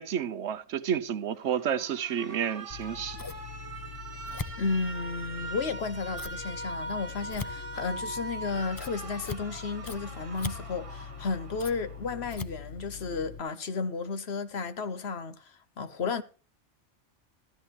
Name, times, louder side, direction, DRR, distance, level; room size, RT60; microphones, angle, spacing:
voice 1, 0.0-3.2, right 8 dB, 70° right, 1.1 m, -30 dB
Alarm, 1.3-12.3, right 2 dB, 30° right, 1.2 m, -42 dB
Scissors, 2.7-13.4, left 5 dB, 25° left, 0.6 m, -42 dB
voice 2, 4.3-16.2, left 4 dB, 60° left, 1.2 m, -33 dB
15.5 x 13.0 x 3.0 m
omnidirectional pair, 1.3 m